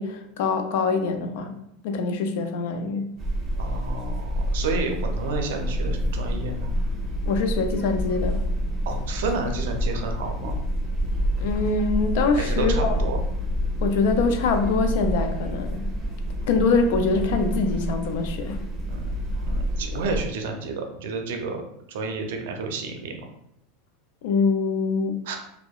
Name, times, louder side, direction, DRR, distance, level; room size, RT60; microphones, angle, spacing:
voice 1, 0.0-1.6 1.8-3.1 7.3-8.4 11.4-12.9 13.8-15.9 16.5-18.6 24.2-25.4, left 4 dB, 70° left, 6 dB, 0.3 m, -24 dB
sound 1, 3.2-20.2, equal, 20° right, 0.7 m, -28 dB
voice 2, 3.6-6.8 8.9-10.6 12.4-13.2 18.9-19.1 19.4-21.6 21.9-23.2 25.2-25.4, right 3 dB, 75° right, 4 dB, 0.4 m, -30 dB
2.6 x 2.1 x 2.3 m, 0.78 s
hypercardioid pair, 105°, 0 cm